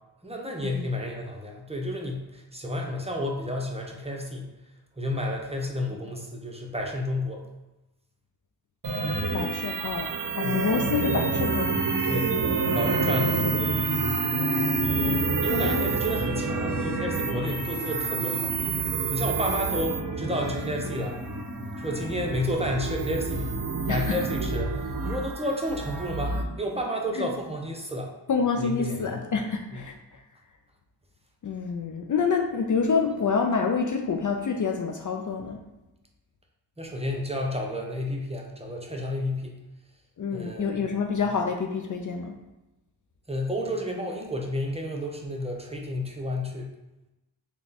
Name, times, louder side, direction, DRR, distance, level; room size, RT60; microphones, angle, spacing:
voice 1, 0.2-4.5 5.0-7.5 10.4-10.6 12.0-12.4 12.7-14.2 15.4-18.7 19.1-21.2 21.8-23.5 23.9-28.1 28.6-29.2 29.7-29.8 36.8-39.6 40.3-40.8 43.3-46.7, left 1 dB, 15° right, 0 dB, 0.7 m, -31 dB
sound 1, 8.8-26.4, right 4 dB, 50° right, 0.6 m, -28 dB
voice 2, 9.3-11.9 14.4-15.9 23.9-24.2 27.1-27.3 28.3-29.9 31.4-35.6 40.2-42.4, left 5 dB, 45° left, 3 dB, 0.4 m, -27 dB
3.5 x 2.3 x 4.0 m, 1.0 s
cardioid pair, 45°, 44 cm